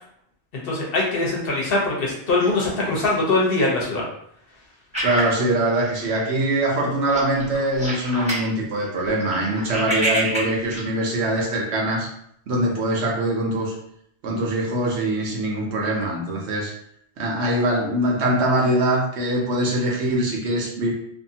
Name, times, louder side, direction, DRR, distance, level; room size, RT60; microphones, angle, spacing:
voice 1, 0.6-4.0, left 2 dB, 60° left, -3 dB, 1.0 m, -22 dB
sound 1, 4.9-6.3 6.6-6.8 7.1-8.5 8.8-10.8, right 1 dB, 5° right, 0.9 m, -27 dB
voice 2, 5.0-12.1 12.5-13.7 14.2-16.7 17.2-20.9, right 1 dB, 75° right, -2 dB, 1.0 m, -23 dB
2.7 x 2.6 x 2.7 m, 0.71 s
omnidirectional pair, 1.1 m